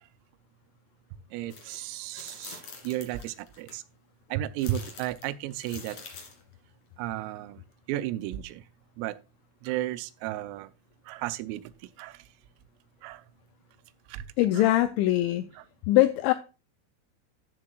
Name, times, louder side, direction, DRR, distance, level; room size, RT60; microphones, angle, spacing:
voice 1, 1.3-3.8 4.3-6.0 7.0-7.6 7.9-8.6 9.0-9.2 9.6-10.7 11.1-12.3 13.0-13.2 14.1-14.2 14.5-14.7, right 13 dB, 85° right, 3.3 m, -34 dB
sound 1, 1.5-1.8 2.1-3.7 4.6-6.4, left 5 dB, 45° left, 2.8 m, -46 dB
voice 2, 14.4-15.5 15.9-16.3, left 15 dB, 85° left, 2.6 m, -22 dB
13.5 x 7.5 x 2.3 m
omnidirectional pair, 5.9 m